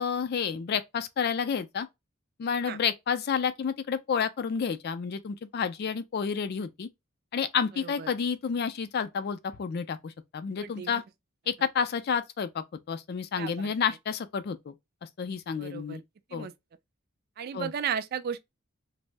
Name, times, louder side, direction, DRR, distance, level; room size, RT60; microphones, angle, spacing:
voice 1, 0.0-1.9 2.4-6.9 7.3-11.0 11.5-14.7 15.2-16.0 16.3-16.5 17.5-17.7, left 6 dB, 50° left, 0.4 m, -30 dB
voice 2, 10.6-10.9 13.4-13.7 15.6-16.0 16.3-16.5 17.4-18.5, right 8 dB, 50° right, 0.3 m, -34 dB
2.5 x 2.0 x 3.2 m
head